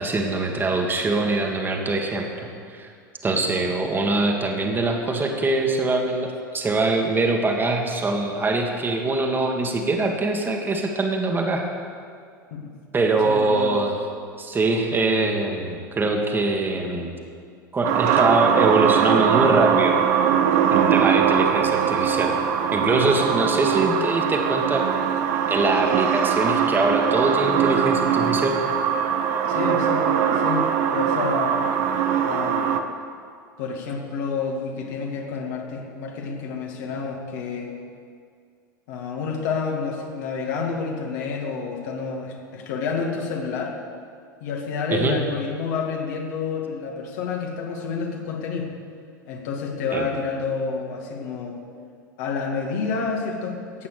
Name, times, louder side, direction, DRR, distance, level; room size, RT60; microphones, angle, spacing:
voice 1, 0.0-2.9 3.2-11.6 12.9-14.0 14.4-17.2 17.7-20.0 20.7-22.3 22.7-24.8 25.5-28.6 44.9-45.2 49.9-50.1, right 2 dB, 20° right, 2 dB, 1.9 m, -23 dB
voice 2, 13.2-13.8 20.9-21.1 29.4-31.6 32.2-32.6 33.6-37.7 38.9-43.8 44.4-48.7 49.3-51.6 52.2-53.9, left 5 dB, 55° left, 1 dB, 2.2 m, -29 dB
sound 1, 17.8-32.8, right 8 dB, 55° right, 1.0 m, -21 dB
15.5 x 9.2 x 6.7 m, 2.2 s
figure-of-eight pair, 80°, 11 cm